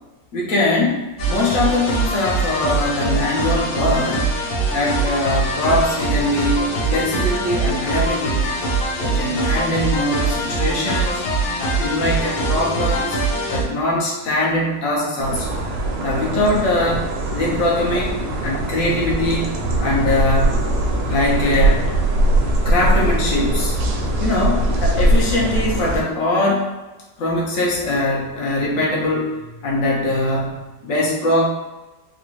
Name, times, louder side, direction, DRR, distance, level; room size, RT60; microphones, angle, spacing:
voice 1, 0.3-4.2 4.7-8.6 9.0-11.2 11.6-13.2 13.5-15.6 16.0-17.0 17.3-19.5 19.8-20.7 21.1-22.0 22.6-23.7 24.2-26.7 27.2-29.3 29.6-31.5, left 1 dB, 55° left, -3 dB, 1.0 m, -21 dB
sound 1, 1.2-13.6, right 2 dB, 80° left, 1.5 m, -22 dB
sound 2, 15.2-26.0, right 1 dB, 85° right, 1.3 m, -21 dB
3.9 x 2.3 x 3.0 m, 1.1 s
omnidirectional pair, 1.9 m